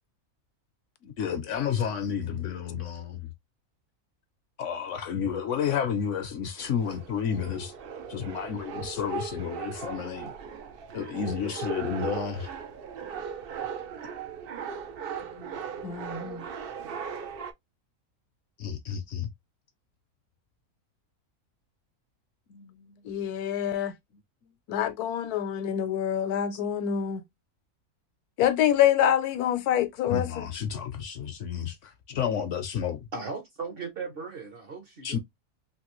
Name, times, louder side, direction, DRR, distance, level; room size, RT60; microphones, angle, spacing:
voice 1, 1.0-3.3 4.6-7.7 8.1-10.3 10.9-12.5 15.3-15.8 18.6-19.3 22.5-22.9 26.5-26.6 30.1-33.0 35.0-35.2, left 7 dB, 65° left, 0.8 m, -31 dB
sound 1, 6.6-17.5, right 7 dB, 85° right, 0.5 m, -38 dB
voice 2, 15.8-16.5 23.1-23.9 24.7-27.2 28.4-30.4, left 10 dB, 85° left, 1.1 m, -26 dB
voice 3, 33.1-35.2, right 4 dB, 50° right, 0.7 m, -37 dB
3.2 x 2.5 x 2.9 m
omnidirectional pair, 1.6 m